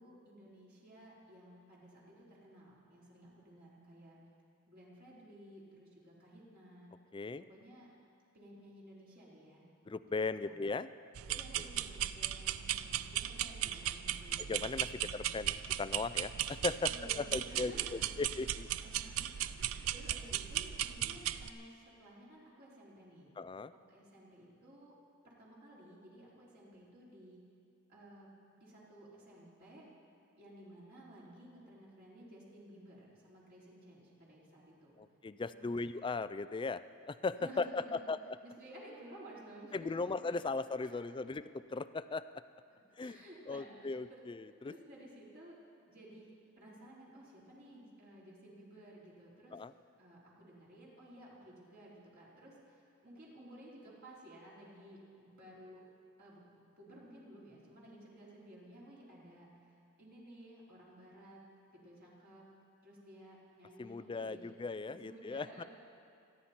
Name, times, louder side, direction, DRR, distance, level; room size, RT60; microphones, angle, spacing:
voice 1, 0.0-4.2 4.7-6.9 7.4-7.9 8.3-9.7 10.2-10.7 11.3-14.5 14.9-15.1 16.9-18.1 18.8-23.4 23.7-25.0 25.2-27.4 27.9-29.9 30.4-35.0 35.5-35.8 37.4-38.1 38.4-40.2 40.8-40.9 42.7-44.2 44.6-45.6 45.9-49.6 50.0-55.8 56.2-61.4 61.7-62.5 62.8-64.5 64.8-65.7, right 1 dB, 50° right, -6 dB, 4.0 m, -55 dB
voice 2, 7.1-7.4 9.9-10.9 11.3-11.7 14.4-16.9 17.2-18.7 23.4-23.7 35.0-36.8 37.1-38.4 39.7-42.2 43.0-43.2 43.5-44.7 49.5-49.7 63.8-65.6, left 3 dB, 25° left, 14 dB, 0.4 m, -38 dB
sound 1, 11.1-21.5, right 11 dB, 80° right, 0.4 m, -37 dB
27.5 x 11.0 x 4.4 m, 2.4 s
head